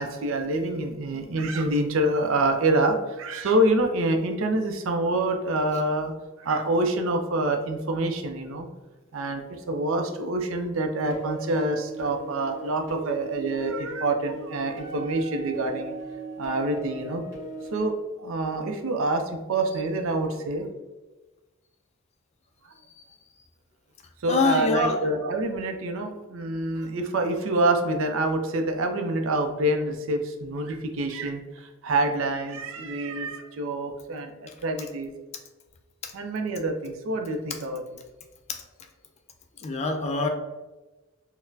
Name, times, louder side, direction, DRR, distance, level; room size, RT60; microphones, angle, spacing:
voice 1, 0.0-6.1 6.4-8.7 9.1-15.9 16.4-17.2 17.7-19.2 19.5-20.7 24.2-35.1 36.1-38.0, right 2 dB, 70° right, 5 dB, 0.4 m, -26 dB
sound 1, 11.1-17.9, right 3 dB, 15° left, 1.4 m, -38 dB
voice 2, 24.3-25.0 39.6-40.3, left 3 dB, 30° left, 3 dB, 0.3 m, -24 dB
3.9 x 2.1 x 2.6 m, 1.1 s
head